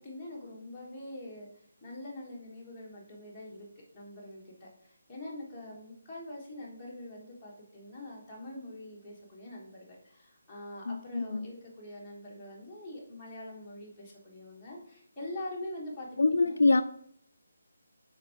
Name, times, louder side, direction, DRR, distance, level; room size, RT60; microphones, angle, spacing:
voice 1, 0.0-1.5 1.8-3.7 3.9-16.1 16.4-16.6, left 1 dB, 5° left, -7 dB, 1.2 m, -44 dB
voice 2, 10.9-11.5 16.2-16.8, left 3 dB, 75° left, 10 dB, 0.4 m, -25 dB
4.9 x 4.4 x 4.5 m, 0.66 s
hypercardioid pair, 175°, 0 cm